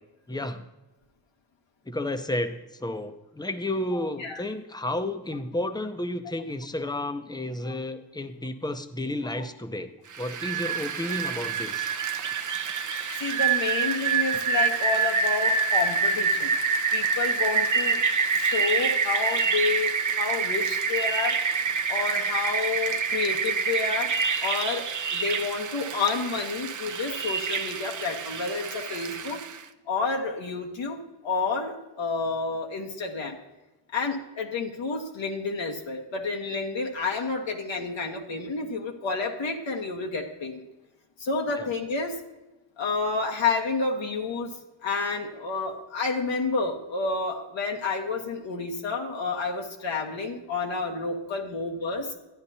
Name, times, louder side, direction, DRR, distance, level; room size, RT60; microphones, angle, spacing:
voice 1, 0.3-0.7 1.9-9.9 10.2-12.0 41.6-41.7, left 1 dB, 10° left, 9 dB, 0.7 m, -32 dB
voice 2, 3.9-4.4 7.6-7.7 9.4-9.5 13.2-16.5 16.9-18.0 18.3-21.4 21.9-24.1 24.4-29.4 29.9-33.4 33.9-40.7 41.2-42.2 42.8-44.5 44.8-52.1, left 4 dB, 75° left, 2 dB, 1.3 m, -30 dB
Rain, 10.1-29.6, right 5 dB, 40° right, 0.7 m, -27 dB
12.5 x 9.6 x 2.8 m, 1.0 s
cardioid pair, 75°, 46 cm